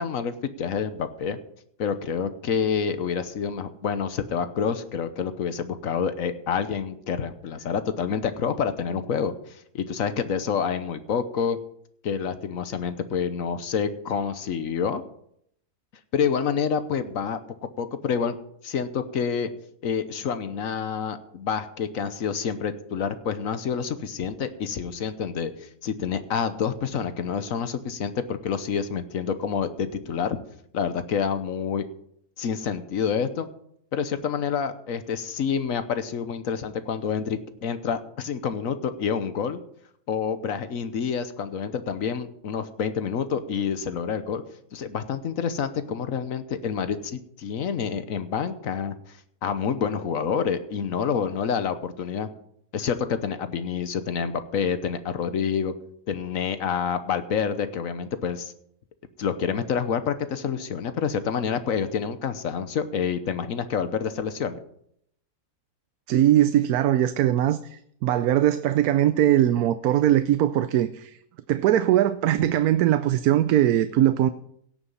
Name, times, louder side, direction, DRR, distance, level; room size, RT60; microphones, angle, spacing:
voice 1, 0.0-1.4 1.8-11.6 12.0-15.0 16.1-17.4 17.8-18.4 18.6-19.5 19.8-30.4 30.7-31.8 32.4-33.5 33.9-39.6 40.1-44.4 44.7-48.9 49.4-52.3 52.7-55.7 56.1-58.5 59.2-64.5, left 7 dB, 65° left, 1.3 m, -28 dB
voice 2, 66.1-71.2 71.5-74.3, right 12 dB, 80° right, 1.1 m, -21 dB
17.0 x 6.9 x 5.5 m
omnidirectional pair, 1.6 m